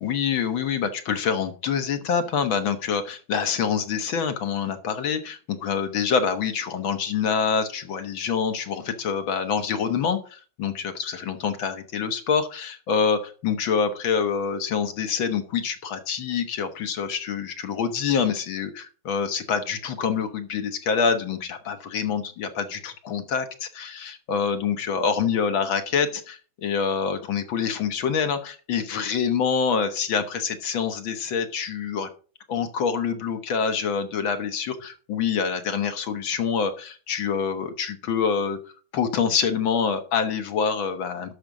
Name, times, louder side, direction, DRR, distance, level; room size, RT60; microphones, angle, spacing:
voice 1, 0.0-32.1 32.5-38.6 38.9-41.3, left 6 dB, 75° left, 8 dB, 2.1 m, -26 dB
12.5 x 5.2 x 6.1 m, 0.39 s
omnidirectional pair, 2.2 m